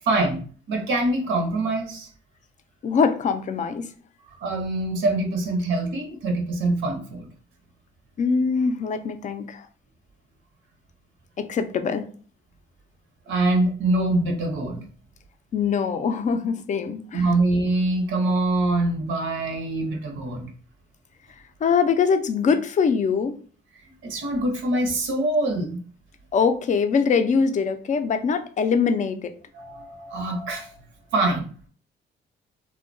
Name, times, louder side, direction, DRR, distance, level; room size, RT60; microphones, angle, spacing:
voice 1, 0.0-0.4 0.7-2.1 4.4-7.3 13.3-14.8 17.1-20.5 24.0-25.8 29.5-30.7 31.1-31.5, right 2 dB, 75° right, 0.8 m, -24 dB
voice 2, 2.8-3.9 8.2-9.7 11.4-12.0 15.5-17.3 21.6-23.4 26.3-29.3, left 5 dB, 40° left, 0.4 m, -23 dB
2.8 x 2.1 x 2.5 m
cardioid pair, 90°, 20 cm